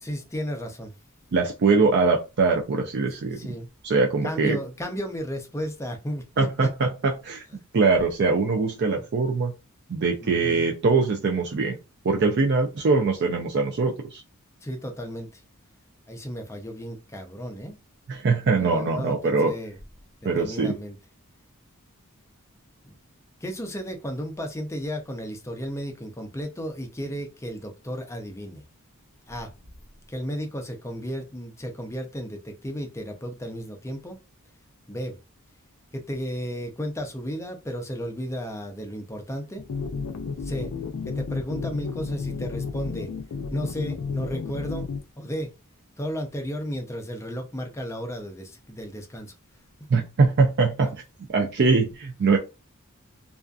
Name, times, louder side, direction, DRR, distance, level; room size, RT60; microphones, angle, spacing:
voice 1, 0.0-0.9 3.3-3.7 4.2-6.7 10.2-10.7 14.6-15.4 16.1-17.8 18.5-19.8 20.2-21.0 22.8-23.0 23.4-28.6 29.3-29.5 30.1-34.2 34.9-35.2 35.9-39.6 40.4-40.7 41.1-43.1 43.5-45.5 46.0-49.3 51.4-51.9, equal, 15° left, 0.5 m, -34 dB
voice 2, 1.3-3.4 3.8-4.6 6.4-7.4 7.7-9.5 9.9-11.8 12.0-14.2 18.1-19.5 20.2-20.7 49.9-50.9 51.3-52.4, right 4 dB, 50° right, 0.4 m, -22 dB
sound 1, 39.6-45.0, left 5 dB, 75° left, 0.4 m, -32 dB
2.5 x 2.4 x 2.3 m
head